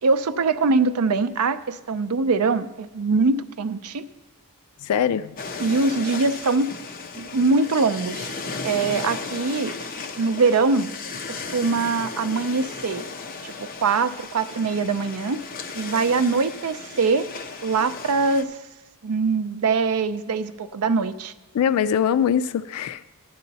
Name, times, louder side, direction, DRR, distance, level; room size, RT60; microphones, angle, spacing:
voice 1, 0.0-4.1 5.6-6.7 7.2-8.3 8.6-9.7 10.2-10.9 11.3-13.0 13.4-15.4 15.7-17.3 17.6-18.6 19.0-21.3, right 4 dB, 75° right, 12 dB, 0.5 m, -23 dB
voice 2, 4.8-5.3 21.5-23.0, left 8 dB, 80° left, 15 dB, 0.3 m, -22 dB
sound 1, 5.4-18.4, left 4 dB, 40° left, 0.7 m, -35 dB
11.5 x 10.5 x 4.0 m, 1.0 s
head